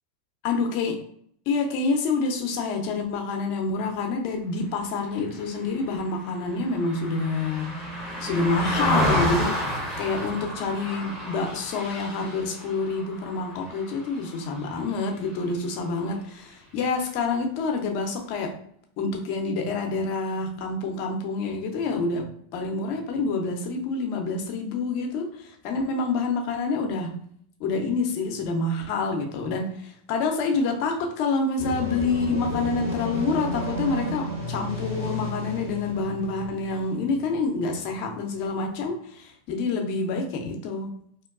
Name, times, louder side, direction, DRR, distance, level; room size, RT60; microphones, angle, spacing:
voice 1, 0.4-1.0 1.5-7.7 8.2-18.5 19.0-27.2 27.6-41.0, left 3 dB, 55° left, 3 dB, 0.6 m, -27 dB
Car passing by, 5.3-14.9 15.3-15.5, left 1 dB, 25° right, 1.1 m, -30 dB
sound 1, 31.6-38.5, left 1 dB, 85° right, 1.3 m, -33 dB
2.9 x 2.2 x 2.4 m, 0.64 s
hypercardioid pair, 110°, 0 cm